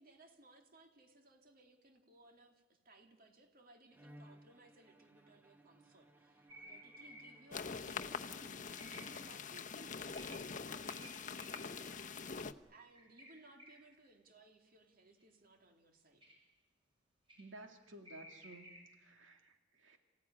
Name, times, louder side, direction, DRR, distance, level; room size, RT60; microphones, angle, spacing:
voice 1, 0.0-16.3, right 2 dB, 50° right, 3 dB, 2.5 m, -63 dB
Bowed string instrument, 3.9-9.9, right 1 dB, 10° right, 1.2 m, -63 dB
sound 1, 6.5-7.6 8.8-9.4 10.1-11.9 12.9-14.1 15.2-15.3 16.2-16.4 17.3-17.5 18.0-19.0, right 1 dB, 30° right, 6.7 m, -56 dB
sound 2, 7.5-12.5, left 5 dB, 40° left, 0.8 m, -44 dB
voice 2, 17.4-20.0, right 2 dB, 80° right, 4 dB, 2.3 m, -55 dB
28.0 x 16.0 x 9.9 m, 1.2 s
head